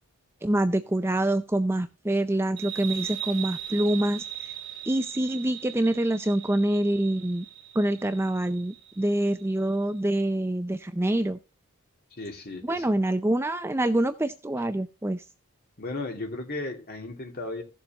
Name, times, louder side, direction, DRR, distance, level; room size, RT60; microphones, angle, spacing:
voice 1, 0.4-4.5 4.9-7.5 7.8-11.4 12.6-15.2, right 1 dB, 10° right, 0.4 m, -26 dB
sound 1, 2.6-9.8, right 11 dB, 50° right, 2.7 m, -39 dB
voice 2, 12.1-12.9 15.8-17.6, left 2 dB, 45° left, 2.6 m, -35 dB
16.0 x 7.1 x 2.9 m
head